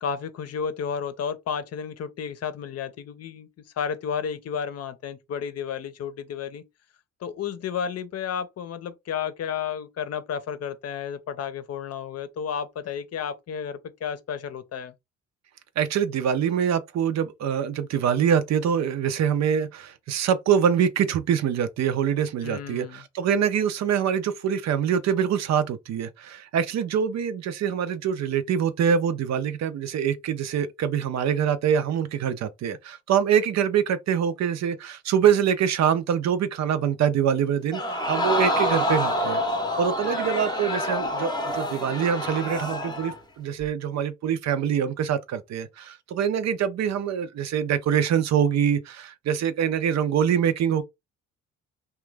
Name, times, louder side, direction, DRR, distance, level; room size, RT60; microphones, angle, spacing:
voice 1, 0.0-6.6 7.2-14.9 22.4-23.0, left 7 dB, 55° left, 0.6 m, -32 dB
voice 2, 15.8-39.4 39.8-50.8, right 8 dB, 60° right, 0.6 m, -24 dB
Crowd, 37.7-43.2 43.6-43.7, left 1 dB, 15° left, 0.7 m, -27 dB
2.9 x 2.3 x 3.3 m
cardioid pair, 90°, 30 cm